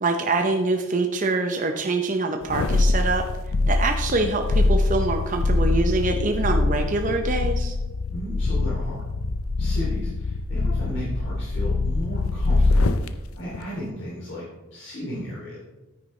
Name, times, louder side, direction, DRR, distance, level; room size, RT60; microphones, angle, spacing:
voice 1, 0.0-3.3 3.7-7.8, right 3 dB, 35° right, 4 dB, 0.6 m, -25 dB
sound 1, 2.4-13.1 13.5-13.6, left 2 dB, 80° left, 0.5 m, -23 dB
voice 2, 8.1-9.0 9.6-15.6, equal, 55° left, -7 dB, 2.8 m, -35 dB
9.9 x 9.3 x 3.2 m, 1.2 s
head